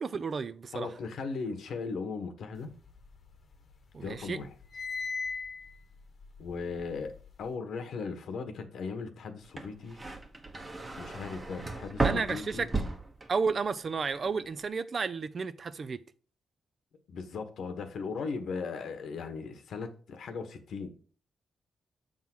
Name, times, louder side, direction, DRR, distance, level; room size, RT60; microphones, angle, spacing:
voice 1, 0.0-0.9 3.9-4.4 12.0-12.7 13.3-16.0, right 5 dB, 45° right, 0.5 m, -32 dB
voice 2, 0.7-2.7 4.0-4.5 6.4-10.0 11.0-12.7 17.1-20.9, left 4 dB, 75° left, 1.2 m, -38 dB
sound 1, 2.7-3.8 4.1-7.5, left 4 dB, 50° left, 1.1 m, -40 dB
sound 2, 9.4-13.7 14.0-14.6, right 3 dB, 25° right, 1.2 m, -34 dB
7.2 x 3.8 x 6.0 m
cardioid pair, 95°, 0 cm